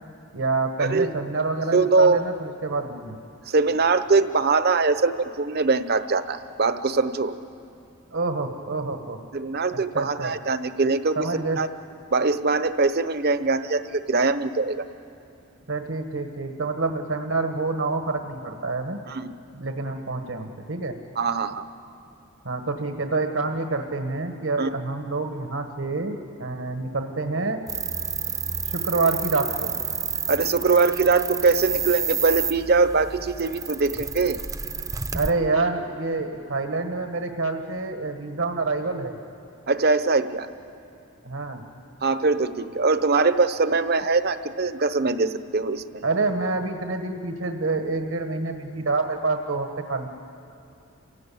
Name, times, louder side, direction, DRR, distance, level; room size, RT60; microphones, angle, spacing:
voice 1, 0.3-3.2 8.1-9.2 9.7-10.3 11.2-11.7 15.7-19.0 19.5-21.0 22.4-27.6 28.7-29.7 35.1-39.2 41.2-41.6 46.0-50.1, right 3 dB, 75° right, 5 dB, 1.5 m, -27 dB
voice 2, 1.7-2.2 3.5-7.3 9.3-11.3 11.6-11.7 12.1-14.9 19.1-19.3 21.2-21.6 24.6-24.7 30.3-34.4 39.7-40.5 42.0-46.0, right 4 dB, 55° right, 11 dB, 0.9 m, -22 dB
sound 1, 27.7-35.3, right 6 dB, 15° right, 0.6 m, -30 dB
28.5 x 17.0 x 8.5 m, 2.6 s
head